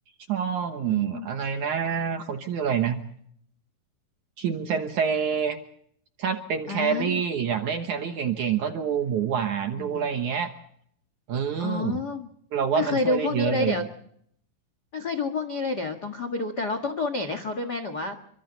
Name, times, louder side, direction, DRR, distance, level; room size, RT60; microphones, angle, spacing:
voice 1, 0.3-3.0 4.4-5.6 6.2-10.5 11.3-12.0 12.5-13.9, right 7 dB, 65° right, 6 dB, 2.0 m, -27 dB
voice 2, 0.9-1.3 6.7-7.2 9.7-10.0 11.6-12.3 12.7-13.8 14.9-18.2, left 3 dB, 60° left, 9 dB, 1.0 m, -29 dB
29.5 x 24.5 x 4.0 m, 0.68 s
omnidirectional pair, 4.8 m